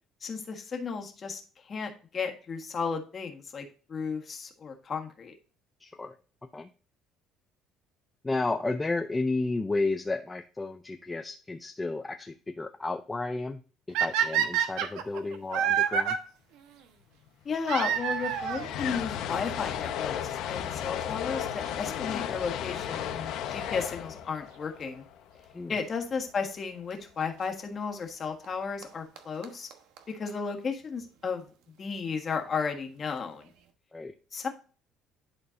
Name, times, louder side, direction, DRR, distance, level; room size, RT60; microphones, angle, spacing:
voice 1, 0.2-5.3 17.4-25.0 25.7-29.7 30.1-31.4 31.8-33.5 34.3-34.5, left 5 dB, 30° left, 4 dB, 1.5 m, -34 dB
voice 2, 5.8-6.1 6.5-6.7 8.2-13.6 13.9-16.2 25.5-25.7 33.9-34.1, left 3 dB, 15° left, 6 dB, 0.5 m, -32 dB
sound 1, 13.9-16.2 17.6-18.7 19.6-19.7 20.4-20.5 20.7-20.8 22.7-22.9 25.8-25.9 26.9-27.0 28.4-28.5 28.8-28.9 29.2-29.3 29.4-29.5 29.7-29.8 30.0-30.1 30.3-30.4, right 8 dB, 85° right, 1.1 m, -27 dB
sound 2, 17.3-17.4 17.5-25.8, left 9 dB, 70° left, 1.0 m, -35 dB
11.0 x 4.4 x 2.6 m, 0.37 s
cardioid pair, 140°, 0 cm